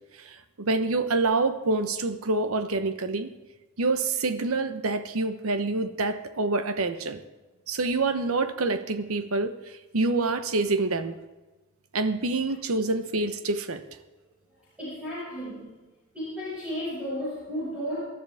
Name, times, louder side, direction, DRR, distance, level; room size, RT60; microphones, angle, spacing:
voice 1, 0.2-3.3 3.8-7.2 7.7-11.1 11.9-13.8, right 3 dB, 80° right, 10 dB, 1.0 m, -27 dB
voice 2, 14.8-15.7 16.1-18.0, equal, 5° right, -10 dB, 5.9 m, -33 dB
19.0 x 12.5 x 3.5 m, 1.2 s
head